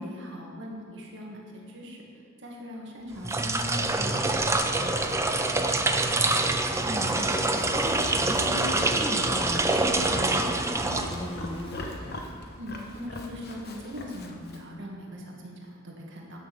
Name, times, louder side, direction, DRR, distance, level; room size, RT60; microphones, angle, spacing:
voice 1, 0.0-2.0 2.4-5.2 5.5-6.5 12.6-16.4, left 1 dB, 65° right, -2 dB, 1.9 m, -41 dB
Livestock farm animals working animals, 3.0-14.7, left 1 dB, 50° left, 1.1 m, -43 dB
sound 1, 3.1-11.6, right 2 dB, 15° right, 0.6 m, -26 dB
sound 2, 6.4-12.8, left 1 dB, 25° left, 1.6 m, -42 dB
voice 2, 6.8-11.7, equal, 5° left, -1 dB, 1.2 m, -36 dB
10.5 x 6.2 x 7.1 m, 2.1 s
head